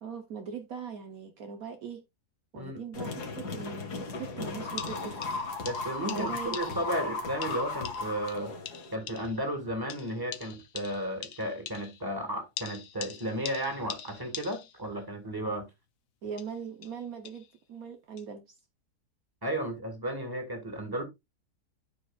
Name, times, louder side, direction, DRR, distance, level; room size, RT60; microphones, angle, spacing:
voice 1, 0.0-2.0 2.5-5.3 6.1-6.6 16.2-18.4, right 6 dB, 65° right, 1.4 m, -40 dB
sound 1, 2.9-8.9, left 3 dB, 85° left, 2.1 m, -36 dB
sound 2, 4.3-4.4 4.8-7.0 7.4-9.5 9.9-12.1 12.6-14.9 16.2-17.5 18.2-18.3, left 9 dB, 65° left, 1.2 m, -44 dB
voice 2, 5.6-8.5 8.9-15.7 19.4-21.0, right 1 dB, 15° right, 2.2 m, -34 dB
12.5 x 5.0 x 2.5 m
omnidirectional pair, 1.7 m